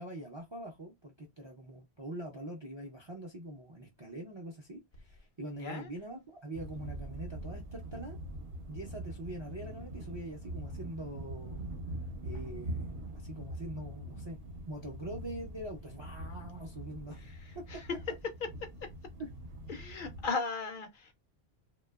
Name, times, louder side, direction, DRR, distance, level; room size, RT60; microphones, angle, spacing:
voice 1, 0.0-8.2 8.7-11.7 12.2-14.4 14.7-17.2 17.5-17.6, right 1 dB, 40° right, 0.4 m, -44 dB
voice 2, 5.6-5.9 17.1-18.0 18.4-18.9 19.7-21.1, left 4 dB, 60° left, 0.6 m, -38 dB
sound 1, 6.5-20.3, right 1 dB, 65° right, 0.8 m, -43 dB
2.8 x 2.2 x 2.2 m
omnidirectional pair, 1.1 m